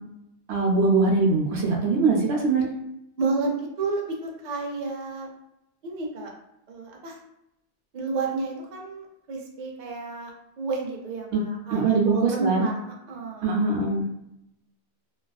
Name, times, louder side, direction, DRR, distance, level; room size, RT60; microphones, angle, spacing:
voice 1, 0.5-2.7 11.3-11.4 11.7-12.7 13.4-14.1, right 3 dB, 90° right, 0 dB, 0.9 m, -22 dB
voice 2, 3.2-5.3 5.8-6.3 6.7-7.2 7.9-12.8 13.1-13.5, right 4 dB, 55° right, 0 dB, 0.6 m, -30 dB
2.4 x 2.3 x 2.2 m, 0.83 s
omnidirectional pair, 1.1 m